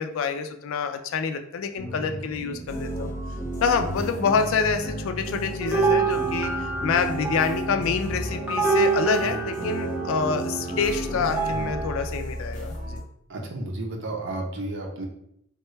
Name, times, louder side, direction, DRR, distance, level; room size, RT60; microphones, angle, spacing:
voice 1, 0.0-3.1 3.6-13.0, left 5 dB, 65° left, 7 dB, 0.3 m, -27 dB
sound 1, 1.8-11.7, right 1 dB, 85° right, 1.1 m, -34 dB
sound 2, 2.7-13.0, left 1 dB, 35° left, 0.6 m, -37 dB
sound 3, 5.6-12.1, right 4 dB, 10° right, 0.5 m, -27 dB
voice 2, 13.3-15.0, right 2 dB, 55° right, 1 dB, 0.6 m, -32 dB
3.6 x 2.2 x 3.1 m, 0.73 s
head